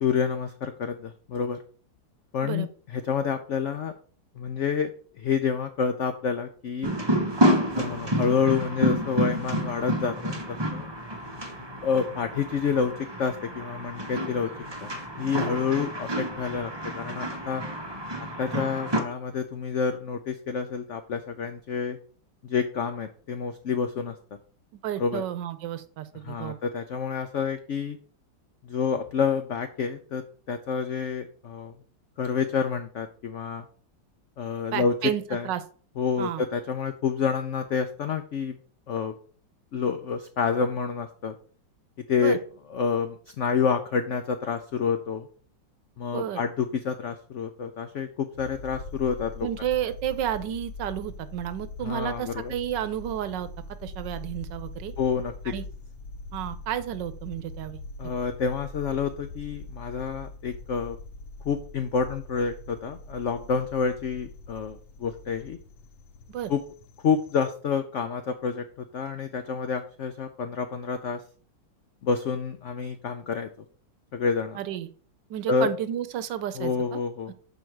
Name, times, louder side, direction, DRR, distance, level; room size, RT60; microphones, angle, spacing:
voice 1, 0.0-1.6 2.3-2.7 2.9-3.9 4.4-4.9 5.2-6.9 7.8-10.9 11.8-14.5 14.8-17.6 18.4-22.0 22.4-24.1 25.0-25.2 26.2-28.0 28.6-31.7 32.2-33.7 34.4-34.9 35.3-35.5 36.0-38.5 38.9-39.1 39.7-41.3 42.1-42.4 42.7-45.3 46.0-49.5 51.8-52.5 55.0-55.5 58.0-61.0 61.4-65.6 66.5-66.6 67.0-71.2 72.0-73.5 74.1-74.6 75.5-75.7 76.6-77.3, left 6 dB, 80° left, 8 dB, 0.6 m, -28 dB
sound 1, 6.8-19.0, equal, 25° right, 0.6 m, -29 dB
voice 2, 24.7-26.6 34.7-35.6 36.2-36.4 42.2-42.4 46.1-46.4 49.4-53.5 53.8-54.9 55.5-55.6 56.3-57.8 66.3-66.5 74.5-74.9 75.3-77.0 77.3-77.4, right 11 dB, 75° right, 13 dB, 1.3 m, -31 dB
sound 2, 48.3-67.5, left 2 dB, 60° left, 1.2 m, -42 dB
7.0 x 4.9 x 4.5 m, 0.44 s
omnidirectional pair, 2.0 m